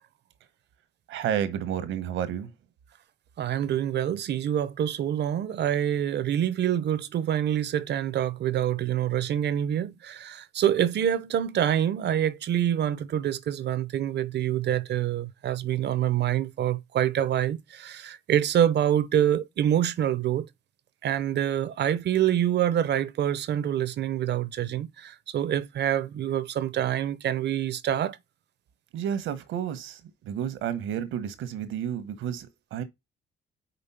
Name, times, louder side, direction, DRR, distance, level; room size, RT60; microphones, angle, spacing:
voice 1, 1.1-2.5 28.9-32.8, right 9 dB, 85° right, 1.0 m, -31 dB
voice 2, 3.4-20.5 21.0-28.2, right 10 dB, 60° right, 0.6 m, -26 dB
5.2 x 4.0 x 5.5 m
cardioid pair, 90°, 20 cm